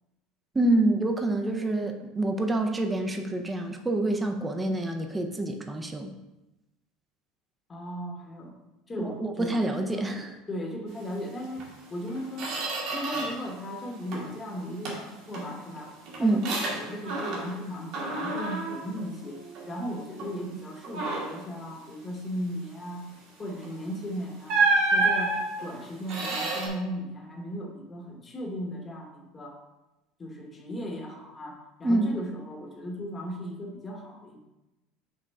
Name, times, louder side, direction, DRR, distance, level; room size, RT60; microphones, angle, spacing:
voice 1, 0.5-6.1 9.0-10.4 16.2-16.5 31.8-32.1, right 2 dB, 10° right, 4 dB, 0.5 m, -27 dB
voice 2, 7.7-8.6 8.9-9.6 9.9-10.1 10.5-15.9 16.2-23.0 23.4-24.6 24.9-29.6 30.2-34.4, equal, 15° left, 1 dB, 0.9 m, -37 dB
Squeak, 11.6-11.7 12.1-13.5 13.8-14.4 14.8-17.6 17.9-19.8 20.2-20.4 20.8-21.5 23.6-23.8 24.5-26.7, right 3 dB, 50° right, 1.5 m, -29 dB
5.5 x 3.6 x 5.2 m, 1.0 s
cardioid pair, 170°, 0 cm